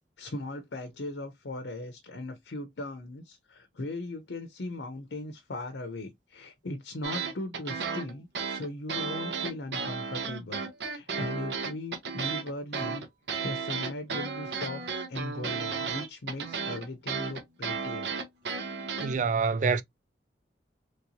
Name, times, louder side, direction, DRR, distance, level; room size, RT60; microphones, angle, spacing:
voice 1, 0.2-13.1 13.4-18.1, left 2 dB, 85° left, 0.7 m, -38 dB
sound 1, 7.0-19.2, right 5 dB, 80° right, 0.9 m, -34 dB
voice 2, 19.0-19.8, right 5 dB, 45° right, 0.3 m, -26 dB
3.2 x 2.9 x 2.7 m
head